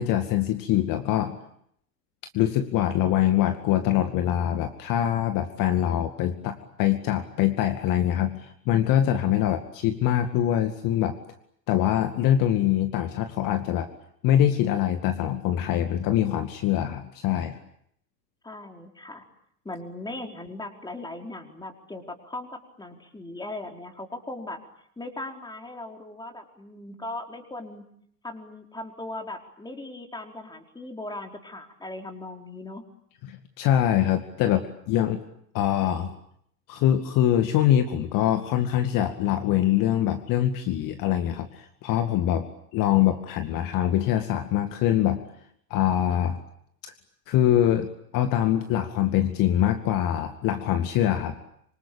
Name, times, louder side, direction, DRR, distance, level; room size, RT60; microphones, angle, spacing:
voice 1, 0.0-1.4 2.3-11.2 11.7-13.9 14.2-17.5 33.3-35.2 35.5-36.1 36.7-45.2 45.7-46.4 46.8-46.9 47.3-47.9 48.1-51.4, left 11 dB, 40° left, 8 dB, 2.2 m, -24 dB
voice 2, 18.4-19.2 19.6-24.6 25.0-27.8 28.2-32.8, left 2 dB, 10° left, 4 dB, 4.5 m, -38 dB
26.0 x 25.5 x 8.7 m, 0.71 s
figure-of-eight pair, 90°, 48 cm